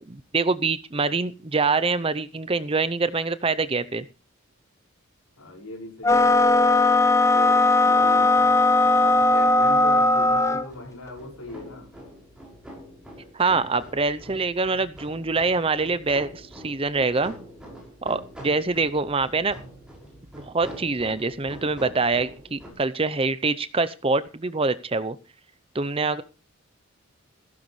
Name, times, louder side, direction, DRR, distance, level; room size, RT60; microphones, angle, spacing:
voice 1, 0.1-4.1 13.3-17.3 18.0-19.6 20.3-25.2 25.7-26.2, right 3 dB, 25° right, 14 dB, 0.6 m, -25 dB
voice 2, 5.4-6.4 7.3-8.5 9.0-11.9, left 2 dB, 85° left, 1 dB, 5.5 m, -38 dB
sound 1, 6.0-10.7, left 2 dB, 15° left, 0.6 m, -18 dB
sound 2, 8.0-22.7, equal, 5° right, 5.9 m, -45 dB
16.0 x 14.0 x 3.2 m, 0.32 s
head